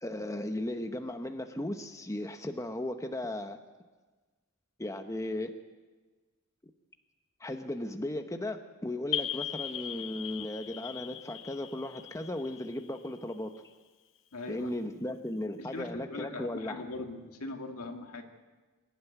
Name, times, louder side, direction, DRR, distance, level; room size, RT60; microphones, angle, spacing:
voice 1, 0.0-3.6 4.8-5.5 7.4-13.5 14.5-16.8, left 1 dB, 15° left, 6 dB, 0.9 m, -36 dB
sound 1, 9.1-13.6, left 10 dB, 60° left, 0.8 m, -38 dB
voice 2, 14.3-14.7 15.7-18.2, left 2 dB, 80° left, 3 dB, 2.3 m, -40 dB
25.0 x 12.0 x 9.2 m, 1.3 s
head